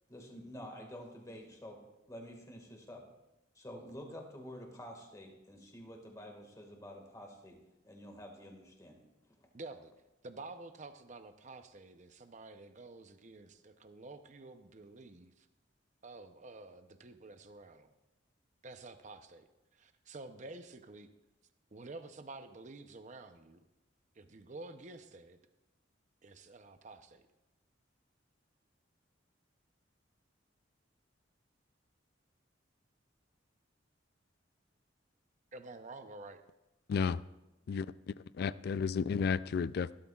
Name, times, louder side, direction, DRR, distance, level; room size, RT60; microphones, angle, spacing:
voice 1, 0.1-1.8 2.1-3.0 3.5-7.6 7.8-9.5, equal, 20° left, 1.8 m, -49 dB
voice 2, 9.5-9.9 10.2-15.5 16.0-17.9 18.6-19.5 19.7-21.1 21.7-23.7 24.1-25.4 26.2-27.2 35.5-36.4, right 2 dB, 40° right, 0.7 m, -50 dB
voice 3, 36.9-37.2 37.7-39.9, left 5 dB, 55° left, 0.3 m, -33 dB
15.5 x 12.5 x 2.4 m
head